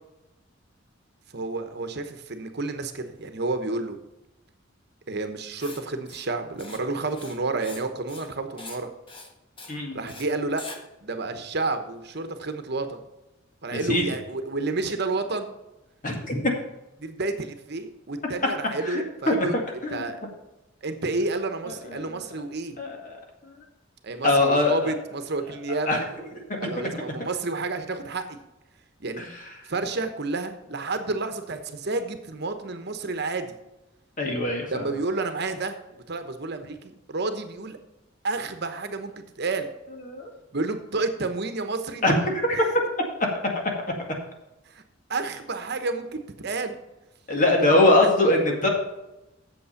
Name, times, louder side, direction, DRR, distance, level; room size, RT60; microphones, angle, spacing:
voice 1, 1.3-4.0 5.1-8.9 9.9-10.6 11.0-13.0 13.6-15.5 17.0-19.6 19.9-20.2 20.8-22.8 24.0-26.0 26.6-28.4 29.0-29.2 29.7-33.5 34.7-37.8 38.2-39.1 39.4-39.7 40.5-42.0 42.5-42.7 44.7-44.8 45.1-46.8 47.6-47.8, right 3 dB, 60° right, 8 dB, 1.0 m, -30 dB
Writing, 5.6-5.8 6.1-6.3 6.6-6.8 7.1-8.3 8.6-8.8 9.1-9.3 9.6-9.7 10.1-10.2 10.6-10.8, left 3 dB, 25° left, 1.4 m, -42 dB
voice 2, 9.7-10.1 13.7-14.0 16.0-16.5 18.8-20.1 21.9-22.2 22.8-23.2 23.4-23.6 24.2-24.9 25.9-26.0 26.6-27.2 29.2-29.4 34.2-34.9 40.1-40.3 42.0-42.6 47.3-48.7, left 2 dB, 45° left, 1 dB, 2.1 m, -23 dB
8.5 x 7.4 x 5.8 m, 0.95 s
head